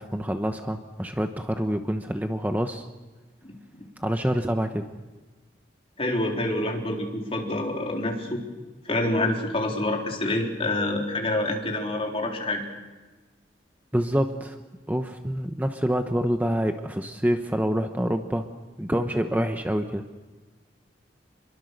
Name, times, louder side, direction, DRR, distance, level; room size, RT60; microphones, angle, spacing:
voice 1, 0.0-2.8 4.0-4.9 13.9-14.6 14.9-18.5 18.8-20.0, equal, 10° right, 6 dB, 1.0 m, -26 dB
voice 2, 6.0-8.4 8.9-12.6, left 1 dB, 35° left, 0 dB, 3.8 m, -27 dB
27.5 x 22.5 x 6.6 m, 1.2 s
head